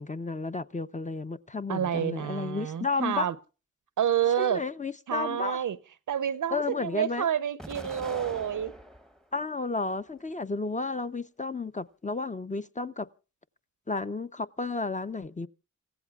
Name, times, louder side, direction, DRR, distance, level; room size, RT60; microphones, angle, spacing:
voice 1, 0.0-3.3 4.4-5.6 6.5-7.2 9.3-13.1 13.9-15.5, left 3 dB, 25° left, 0.7 m, -32 dB
voice 2, 1.7-3.4 4.0-4.6 5.1-5.8 6.1-8.7, right 9 dB, 85° right, 0.7 m, -28 dB
Explosion, 7.6-9.2 9.8-10.7, equal, ahead, 0.9 m, -44 dB
28.0 x 15.5 x 2.4 m
cardioid pair, 70°, 30 cm